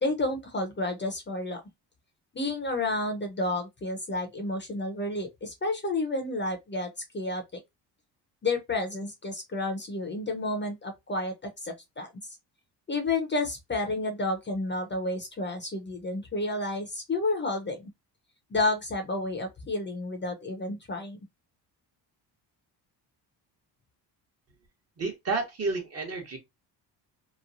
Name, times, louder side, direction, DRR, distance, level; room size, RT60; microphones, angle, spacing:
voice 1, 0.0-1.6 2.3-7.4 8.4-12.1 12.9-17.9 18.5-21.2, left 2 dB, 25° left, 0.7 m, -30 dB
voice 2, 25.0-26.4, right 3 dB, 35° right, 1.1 m, -30 dB
3.0 x 2.1 x 2.5 m
cardioid pair, 100°, 42 cm